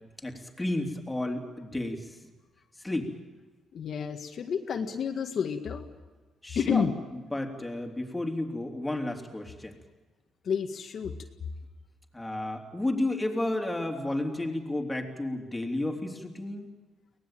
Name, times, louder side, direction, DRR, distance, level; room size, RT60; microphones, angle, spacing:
voice 1, 0.2-2.1 2.8-3.1 6.4-6.9 7.3-9.7 12.1-16.7, left 1 dB, 10° left, 3 dB, 3.2 m, -32 dB
voice 2, 3.7-5.9 6.5-6.9 10.4-11.1, left 6 dB, 60° left, 4 dB, 1.8 m, -30 dB
23.5 x 18.5 x 9.1 m, 1.2 s
cardioid pair, 90°, 0 cm